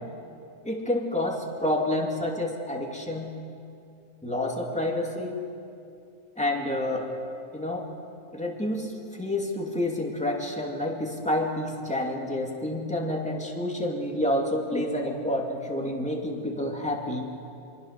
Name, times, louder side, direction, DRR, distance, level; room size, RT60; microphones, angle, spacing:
voice 1, 0.6-3.3 4.2-5.4 6.4-7.1 7.5-7.9 8.3-17.3, left 1 dB, 5° left, 0 dB, 2.5 m, -29 dB
25.0 x 23.5 x 6.7 m, 2.5 s
omnidirectional pair, 1.4 m